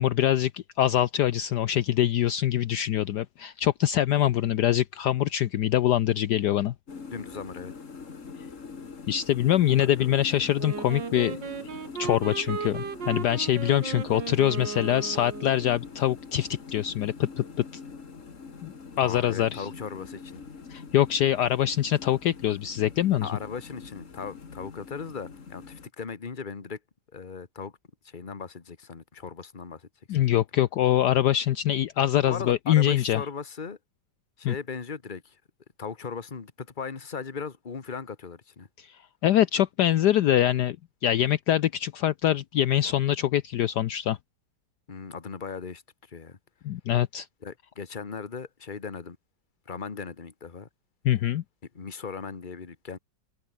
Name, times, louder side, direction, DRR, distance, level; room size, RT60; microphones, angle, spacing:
voice 1, 0.0-6.7 9.1-11.4 12.0-17.4 18.6-18.7 19.0-19.7 20.7-23.3 30.1-33.2 34.4-34.5 38.8-38.9 39.2-40.8 41.0-44.2 46.6-47.3 51.0-51.4, left 12 dB, 70° left, 1.2 m, -24 dB
sound 1, 6.9-25.9, left 5 dB, 45° left, 2.3 m, -44 dB
voice 2, 7.1-7.7 9.7-10.2 19.0-20.4 23.2-26.8 27.1-27.7 28.0-29.9 30.2-30.3 32.3-33.8 34.4-35.4 35.8-38.7 44.9-45.8 46.1-46.4 47.4-49.2 49.7-50.7 51.7-53.0, left 5 dB, 25° left, 1.6 m, -38 dB
Wind instrument woodwind instrument, 10.6-15.8, right 6 dB, 70° right, 2.9 m, -36 dB
omnidirectional pair, 2.0 m